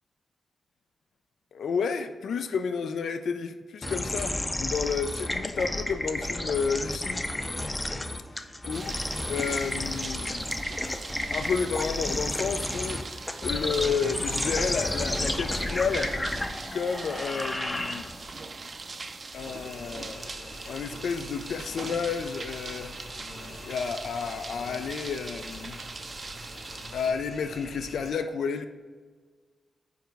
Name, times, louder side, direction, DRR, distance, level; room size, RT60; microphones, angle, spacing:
voice 1, 1.5-7.2 8.7-8.9 9.3-10.5 11.3-16.1 16.7-18.1 19.3-22.9 23.7-25.8 26.9-28.7, left 6 dB, 80° left, 0.3 m, -31 dB
sound 1, 3.8-18.4, left 1 dB, 20° left, 0.5 m, -32 dB
sound 2, 8.7-27.1, right 3 dB, 45° right, 0.5 m, -41 dB
sound 3, 19.3-28.1, left 1 dB, 60° left, 1.5 m, -45 dB
4.7 x 4.5 x 5.1 m
cardioid pair, 75°, 0 cm